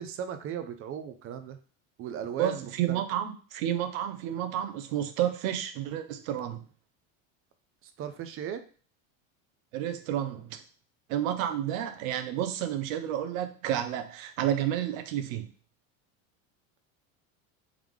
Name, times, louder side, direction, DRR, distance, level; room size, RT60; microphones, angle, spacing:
voice 1, 0.0-1.6 2.0-3.0 7.8-8.6, right 8 dB, 35° right, 9 dB, 0.4 m, -37 dB
voice 2, 2.4-6.6 9.7-10.6 11.1-15.5, right 11 dB, 85° right, 9 dB, 0.8 m, -30 dB
3.6 x 3.2 x 3.5 m, 0.40 s
supercardioid pair, 135°, 40 cm